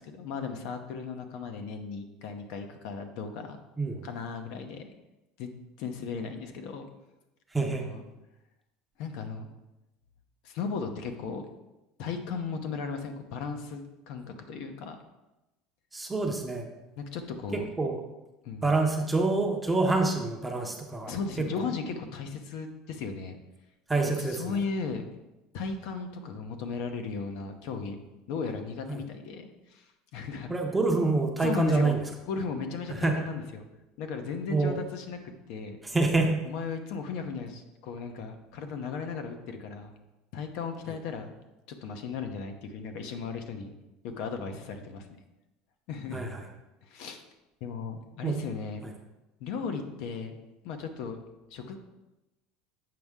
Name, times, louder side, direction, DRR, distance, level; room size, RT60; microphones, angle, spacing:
voice 1, 0.0-3.6 4.0-4.9 5.4-5.5 5.8-6.8 7.6-8.0 9.0-9.5 10.4-11.4 12.0-15.0 17.0-17.7 18.4-18.8 21.1-23.4 24.0-25.1 25.5-28.0 28.3-30.5 31.4-32.0 32.3-33.7 34.0-35.2 35.5-35.8 36.4-39.9 40.3-41.3 41.7-43.7 44.0-45.2 45.9-46.4 46.8-47.2 47.6-48.8 49.4-50.4 50.6-51.2 51.5-51.8, left 5 dB, 55° left, 6 dB, 0.8 m, -36 dB
voice 2, 7.5-7.8 15.9-16.7 17.5-18.0 18.6-21.1 23.9-24.4 28.9-29.0 30.5-32.0 33.0-33.1 34.5-34.8 35.8-36.4 46.1-46.4 48.2-48.3, right 3 dB, 5° right, 2 dB, 0.7 m, -26 dB
7.6 x 5.4 x 3.6 m, 0.99 s
cardioid pair, 165°, 0 cm